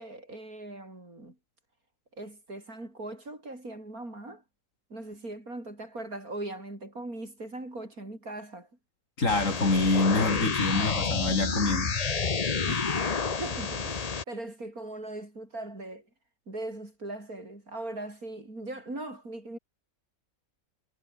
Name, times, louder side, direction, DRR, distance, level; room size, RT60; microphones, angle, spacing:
voice 1, 0.0-1.4 2.2-4.4 4.9-8.7 12.7-13.1 13.4-16.1 16.5-19.6, right 2 dB, 85° right, 8.0 m, -40 dB
voice 2, 9.2-12.0, left 2 dB, 60° left, 4.5 m, -26 dB
sound 1, 9.3-14.2, left 5 dB, 30° left, 1.0 m, -29 dB
omnidirectional pair, 1.5 m